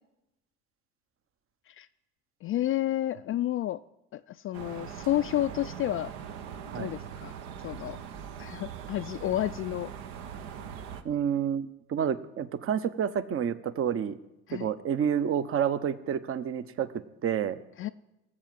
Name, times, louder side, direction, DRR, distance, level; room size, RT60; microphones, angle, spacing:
voice 1, 2.4-3.8 4.1-6.1 6.7-7.3 7.6-8.0 8.4-9.9 14.5-14.7 17.8-17.9, left 13 dB, 40° left, 10 dB, 0.4 m, -30 dB
sound 1, 4.5-11.0, right 8 dB, 75° right, 1.1 m, -41 dB
voice 2, 11.0-14.2 14.5-16.9 17.2-17.6, right 8 dB, 40° right, 14 dB, 0.9 m, -29 dB
18.0 x 7.3 x 7.7 m, 0.95 s
hypercardioid pair, 75°, 33 cm